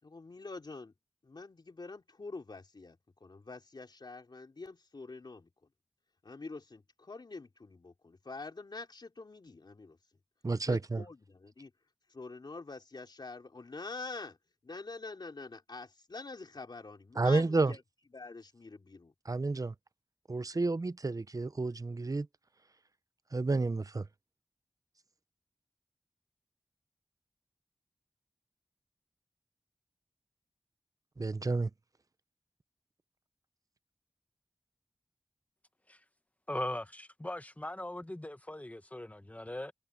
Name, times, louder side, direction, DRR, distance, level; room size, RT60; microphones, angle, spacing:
voice 1, 0.0-0.9 1.2-5.5 6.2-10.0 10.6-11.7 12.1-14.4 14.6-17.8 18.1-19.1, left 3 dB, 65° left, 3.3 m, -46 dB
voice 2, 10.4-11.0 17.2-17.7 19.3-19.7 20.3-22.3 23.3-24.1 31.2-31.7, right 3 dB, 45° right, 0.8 m, -30 dB
voice 3, 36.5-39.7, left 1 dB, 20° left, 1.4 m, -39 dB
wide cardioid pair, 50°, 8 cm